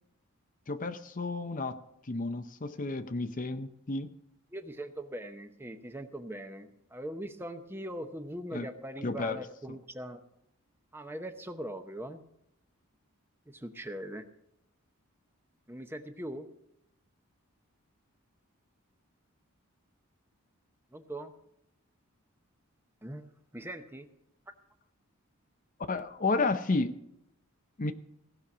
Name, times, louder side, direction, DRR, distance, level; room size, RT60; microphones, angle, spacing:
voice 1, 0.7-4.1 8.5-8.7 9.0-9.4 25.9-26.9 27.8-27.9, left 3 dB, 35° left, 9 dB, 0.6 m, -32 dB
voice 2, 4.5-10.2 10.9-12.2 13.5-14.3 15.7-16.5 20.9-21.3 23.0-23.2 23.5-24.1, right 1 dB, 10° right, 8 dB, 0.8 m, -41 dB
16.5 x 6.4 x 7.2 m, 0.78 s
head